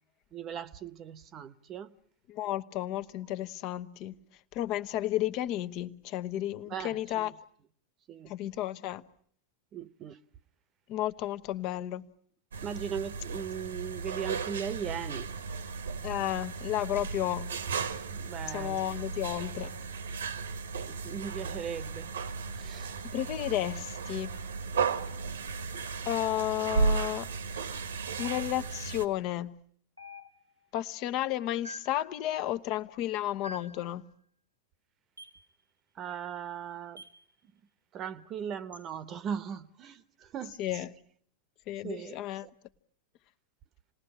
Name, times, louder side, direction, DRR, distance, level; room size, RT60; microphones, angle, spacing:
voice 1, 0.3-1.9 6.7-7.3 8.1-8.3 9.7-10.2 12.6-15.3 18.1-19.0 20.8-22.1 22.5-23.0 36.0-37.0 37.9-40.6 41.8-42.5, right 8 dB, 30° right, 1.1 m, -38 dB
voice 2, 2.3-4.1 4.5-7.3 8.3-9.0 10.9-12.1 16.0-17.5 18.5-19.8 23.1-24.3 26.1-27.3 28.2-29.6 30.7-34.1 40.6-40.9 41.7-42.5, left 13 dB, 40° left, 1.0 m, -32 dB
sound 1, 12.5-29.1, right 5 dB, 65° right, 1.4 m, -35 dB
sound 2, 28.2-28.9 30.0-30.7 31.6-32.1 33.4-33.9 35.2-35.5 37.0-37.2 38.7-38.9 40.5-40.7, left 1 dB, 90° right, 1.1 m, -47 dB
28.0 x 20.0 x 8.7 m
figure-of-eight pair, 90°, 0 cm